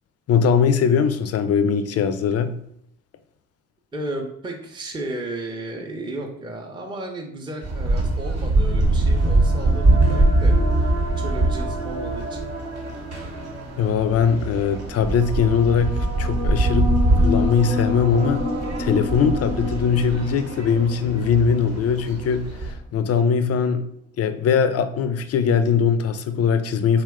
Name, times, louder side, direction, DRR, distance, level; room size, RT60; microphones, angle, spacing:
voice 1, 0.3-2.6 13.8-18.5 18.8-23.8 24.2-27.0, left 6 dB, 40° left, 10 dB, 0.4 m, -21 dB
voice 2, 3.9-12.5, right 1 dB, 10° right, 1 dB, 0.5 m, -34 dB
sound 1, 7.6-22.7, right 2 dB, 40° right, 0.8 m, -23 dB
sound 2, 8.8-22.4, left 1 dB, 90° right, 1.1 m, -32 dB
2.8 x 2.2 x 3.5 m, 0.73 s
hypercardioid pair, 50°, 39 cm